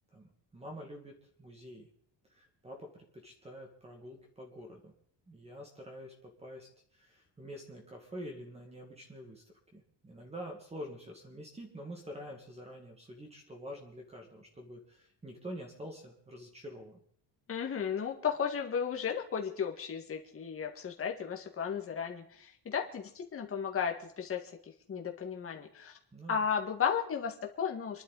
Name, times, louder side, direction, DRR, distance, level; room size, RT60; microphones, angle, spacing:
voice 1, 0.1-1.9 2.3-4.9 5.3-9.4 9.7-17.0 26.1-26.5, equal, 15° right, 1 dB, 2.1 m, -47 dB
voice 2, 17.5-24.4 24.9-25.9 26.3-28.0, left 7 dB, 30° left, 2 dB, 1.9 m, -34 dB
27.5 x 11.5 x 4.1 m, 0.64 s
cardioid pair, 165°, 43 cm